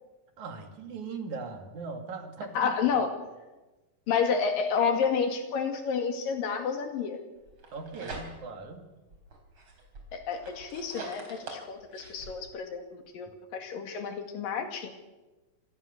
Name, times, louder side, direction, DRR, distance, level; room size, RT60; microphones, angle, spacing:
voice 1, 0.4-2.8 7.7-8.9, right 4 dB, 60° right, 6 dB, 3.4 m, -39 dB
voice 2, 2.6-3.1 4.1-7.2 10.1-14.9, left 6 dB, 80° left, 6 dB, 4.0 m, -30 dB
sound 1, 7.5-8.7 9.1-12.4, right 3 dB, 35° right, 4.7 m, -44 dB
26.0 x 19.5 x 6.7 m, 1.1 s
omnidirectional pair, 4.0 m